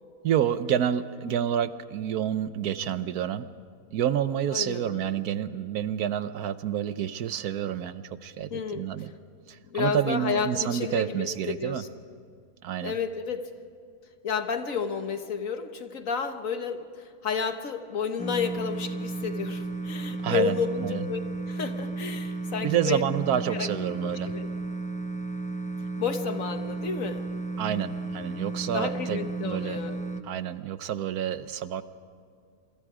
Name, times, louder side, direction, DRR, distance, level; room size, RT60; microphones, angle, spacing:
voice 1, 0.2-3.5 3.9-9.1 9.5-11.8 12.6-12.9 20.2-21.0 22.6-24.3 27.6-29.8 30.2-31.8, right 10 dB, 80° right, 13 dB, 1.3 m, -29 dB
voice 2, 4.5-5.2 8.5-9.1 9.7-11.9 12.8-13.5 14.2-21.2 21.5-23.0 23.5-23.7 24.0-24.5 26.0-27.3 28.7-30.0, left 6 dB, 60° left, 8 dB, 1.5 m, -31 dB
sound 1, 18.2-30.2, right 3 dB, 10° left, 0.4 m, -33 dB
27.0 x 24.0 x 4.9 m, 2.3 s
omnidirectional pair, 1.6 m